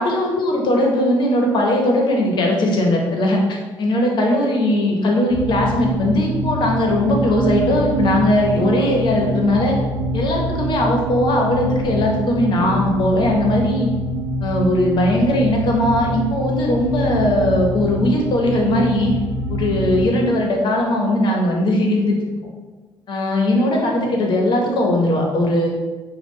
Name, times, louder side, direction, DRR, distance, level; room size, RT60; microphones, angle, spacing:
voice 1, 0.0-9.8 10.1-13.9 14.4-19.1 19.5-22.2 23.1-25.7, left 1 dB, 55° left, 0 dB, 0.9 m, -19 dB
sound 1, 5.3-20.0, right 1 dB, 5° left, 1.1 m, -25 dB
5.2 x 2.4 x 3.2 m, 1.3 s
cardioid pair, 105°, 9 cm